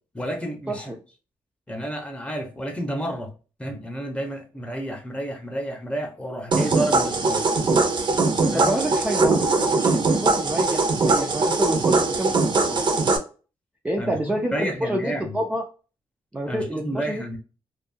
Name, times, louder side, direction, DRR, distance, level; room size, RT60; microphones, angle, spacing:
voice 1, 0.1-1.0 1.7-3.3 3.6-7.4 8.5-8.8 14.0-14.1 14.5-15.4 16.5-17.4, right 1 dB, 10° left, 3 dB, 0.8 m, -30 dB
sound 1, 6.5-13.2, right 3 dB, 50° right, 0.7 m, -21 dB
voice 2, 8.5-12.4 12.6-12.9 13.8-15.6 16.3-17.4, right 1 dB, 10° right, 1 dB, 0.4 m, -28 dB
2.6 x 2.3 x 2.6 m, 0.35 s
cardioid pair, 95°, 10 cm